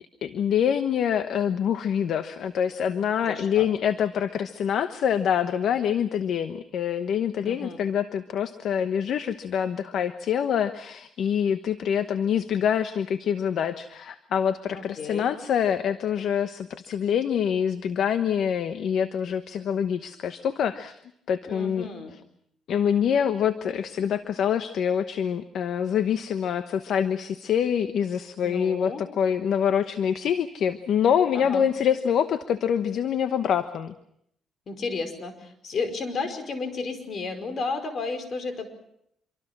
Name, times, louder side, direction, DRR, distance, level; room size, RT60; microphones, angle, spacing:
voice 1, 0.2-21.0 21.3-21.9 22.7-33.9, left 8 dB, 70° left, 10 dB, 1.1 m, -25 dB
voice 2, 3.2-3.7 7.4-7.8 14.7-15.3 21.5-22.1 28.4-29.0 31.3-31.6 34.7-38.7, left 4 dB, 55° left, 8 dB, 5.1 m, -33 dB
26.5 x 24.0 x 6.1 m, 0.74 s
cardioid pair, 90°, 0 cm